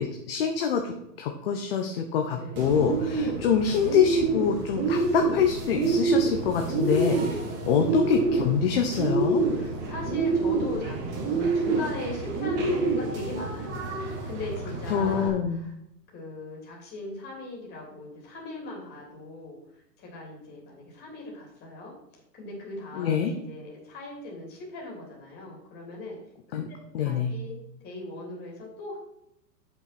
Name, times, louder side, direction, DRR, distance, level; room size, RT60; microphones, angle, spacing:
voice 1, 0.0-9.4 14.9-15.6 22.9-23.3 26.5-26.6 26.9-27.3, left 7 dB, 35° left, 4 dB, 0.9 m, -25 dB
voice 2, 2.3-2.7 3.8-4.0 7.4-7.6 9.5-11.0 11.3-15.7 16.1-19.6 20.0-26.2 27.0-27.6 27.8-29.0, left 2 dB, 20° left, -2 dB, 3.0 m, -39 dB
Bird, 2.6-15.3, right 3 dB, 20° right, 1.5 m, -27 dB
8.1 x 5.7 x 5.9 m, 0.80 s
hypercardioid pair, 155°, 50 cm